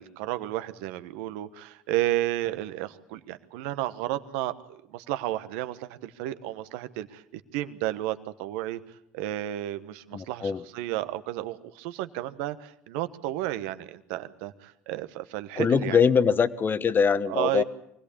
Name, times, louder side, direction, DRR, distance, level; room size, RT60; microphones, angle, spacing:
voice 1, 0.0-8.8 9.1-16.0 17.3-17.6, right 15 dB, 80° right, 12 dB, 1.2 m, -32 dB
voice 2, 10.1-10.6 15.6-17.6, left 6 dB, 35° left, 14 dB, 1.2 m, -23 dB
24.0 x 17.5 x 8.7 m, 0.77 s
supercardioid pair, 80°, 6 cm